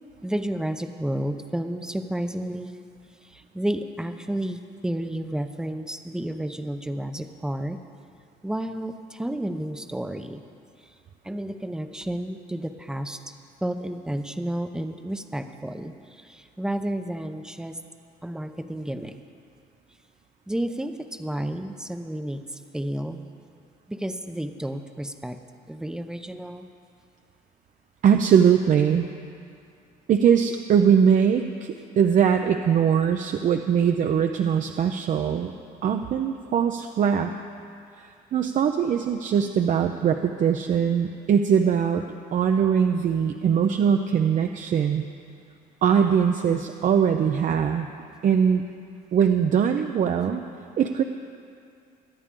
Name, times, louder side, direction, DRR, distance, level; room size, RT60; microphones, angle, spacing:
voice 1, 0.2-2.7 3.2-7.8 8.4-10.4 10.8-10.9 11.2-13.4 13.6-17.8 18.2-19.2 20.5-23.3 23.9-25.4 25.7-26.7, right 1 dB, 5° right, 8 dB, 0.7 m, -31 dB
voice 2, 28.0-29.1 30.1-35.5 35.8-37.3 38.0-42.0 42.3-45.0 45.8-47.9 48.2-48.6 49.1-50.4 50.8-51.0, right 7 dB, 50° right, 5 dB, 0.6 m, -21 dB
23.0 x 9.7 x 3.7 m, 2.4 s
cardioid pair, 110°, 17 cm